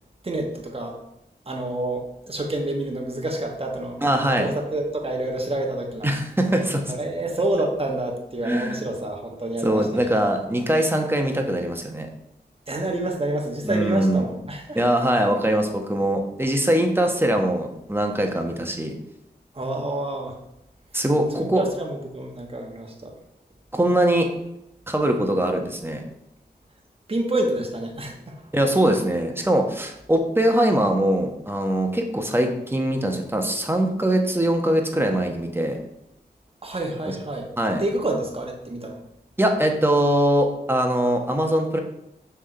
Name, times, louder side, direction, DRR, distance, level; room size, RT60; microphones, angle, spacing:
voice 1, 0.2-1.0 1.5-6.1 6.9-10.0 12.7-14.8 19.5-20.4 21.3-23.1 27.1-28.4 36.6-37.5 37.8-39.0, right 1 dB, 35° right, 1 dB, 1.3 m, -28 dB
voice 2, 4.0-4.5 6.0-6.8 8.4-8.8 9.6-12.1 13.6-14.3 14.7-19.0 20.9-21.6 23.7-24.3 24.9-26.0 28.5-35.8 37.1-37.2 37.6-37.8 39.4-41.8, right 1 dB, 15° right, 3 dB, 1.2 m, -22 dB
6.3 x 3.6 x 4.5 m, 0.83 s
cardioid pair, 45°, 17 cm